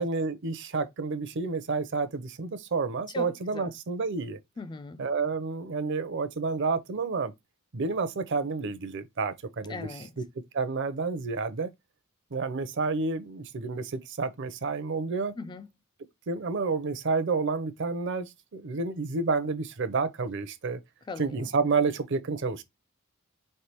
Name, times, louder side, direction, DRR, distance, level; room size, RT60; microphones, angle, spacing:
voice 1, 0.0-4.4 5.0-7.3 7.7-9.9 10.5-11.7 12.3-15.3 16.3-20.8 21.2-22.6, right 4 dB, 55° right, 0.6 m, -30 dB
voice 2, 3.1-3.7 4.6-5.0 9.7-10.1 15.4-15.7 21.1-21.5, left 3 dB, 20° left, 0.3 m, -39 dB
4.4 x 3.3 x 2.9 m
head